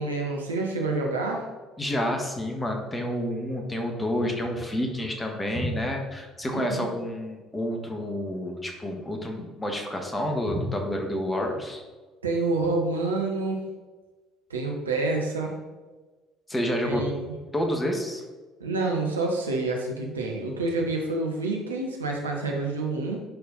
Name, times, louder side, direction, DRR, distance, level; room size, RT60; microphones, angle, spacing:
voice 1, 0.0-1.4 6.5-6.9 12.2-13.6 14.5-15.5 16.8-17.3 18.6-23.2, right 3 dB, 80° right, 0 dB, 1.1 m, -28 dB
voice 2, 1.8-11.8 16.5-17.0 17.5-18.2, left 1 dB, 15° left, 3 dB, 1.6 m, -29 dB
10.0 x 4.5 x 4.0 m, 1.3 s
figure-of-eight pair, 55°, 0 cm